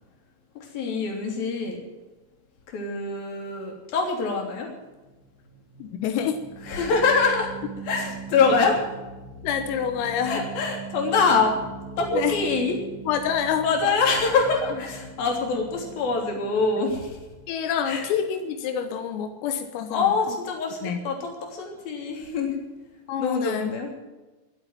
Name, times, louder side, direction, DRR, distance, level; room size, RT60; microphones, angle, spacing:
voice 1, 0.6-1.8 2.7-4.7 6.6-7.5 7.8-8.8 10.2-11.5 11.9-12.8 13.6-17.2 17.8-18.1 19.9-22.6 23.2-23.9, left 4 dB, 50° left, 1 dB, 4.6 m, -24 dB
sound 1, 4.9-18.1, right 4 dB, 50° right, 3.2 m, -41 dB
voice 2, 5.8-6.4 9.4-10.4 12.1-12.4 13.1-13.7 17.5-20.4 20.8-21.0 23.1-23.7, left 8 dB, 85° left, 7 dB, 3.8 m, -27 dB
22.5 x 8.1 x 7.5 m, 1.1 s
omnidirectional pair, 5.9 m